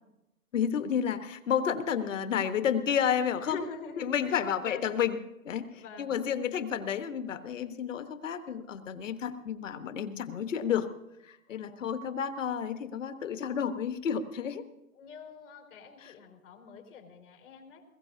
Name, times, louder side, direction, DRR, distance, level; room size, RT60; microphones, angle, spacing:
voice 1, 0.5-3.6 4.0-10.9 11.2-14.6 16.0-16.1, left 8 dB, 60° left, 9 dB, 1.3 m, -31 dB
voice 2, 3.5-4.9 5.7-6.2 11.5-11.9 15.0-17.8, left 5 dB, 80° left, 3 dB, 4.4 m, -45 dB
21.0 x 16.0 x 2.7 m, 0.90 s
hypercardioid pair, 170°, 43 cm